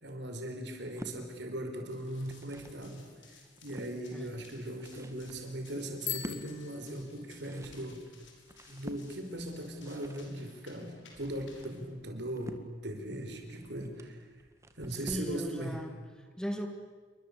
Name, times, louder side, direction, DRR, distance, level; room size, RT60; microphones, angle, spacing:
voice 1, 0.0-8.0 8.7-14.3 14.8-15.8, right 1 dB, 65° right, 5 dB, 4.9 m, -39 dB
sound 1, 0.7-1.2 2.0-2.8 3.3-3.9 4.5-15.4, equal, 15° right, 1.9 m, -50 dB
Run, 1.9-11.9, left 4 dB, 80° left, 6.2 m, -59 dB
Bicycle bell, 6.0-7.7, left 9 dB, 40° left, 2.0 m, -41 dB
voice 2, 15.1-16.7, equal, 5° left, 5 dB, 1.8 m, -38 dB
28.5 x 23.5 x 8.4 m, 1.5 s
head